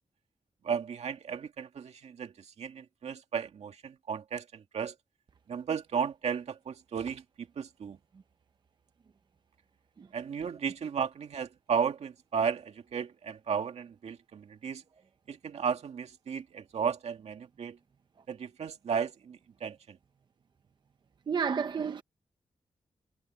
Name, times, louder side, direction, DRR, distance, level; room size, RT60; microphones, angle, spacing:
voice 1, 0.6-4.9 5.5-8.0 10.1-14.8 15.3-17.8 18.3-20.0, right 7 dB, 80° right, 2.1 m, -34 dB
voice 2, 21.3-22.0, right 6 dB, 45° right, 0.7 m, -30 dB
wide cardioid pair, 160°, 11 cm